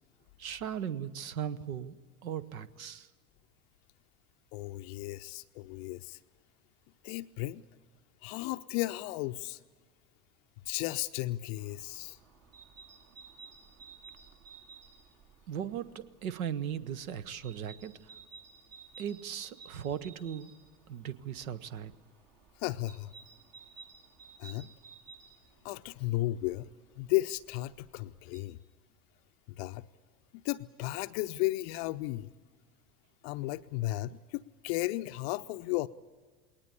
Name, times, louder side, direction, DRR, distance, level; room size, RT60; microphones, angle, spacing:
voice 1, 0.4-1.9 2.2-3.1 15.5-17.9 19.0-20.5 20.9-21.9, right 9 dB, 65° right, 18 dB, 1.0 m, -37 dB
voice 2, 4.5-6.2 7.0-7.6 8.2-9.6 10.6-12.2 22.6-23.1 24.4-24.7 25.6-26.7 27.0-28.6 29.6-29.9 30.4-32.3 33.2-35.9, left 18 dB, 45° left, 11 dB, 0.6 m, -34 dB
sound 1, 11.6-28.4, right 5 dB, 50° right, 3.6 m, -56 dB
20.0 x 19.0 x 9.9 m, 1.5 s
figure-of-eight pair, 75°, 44 cm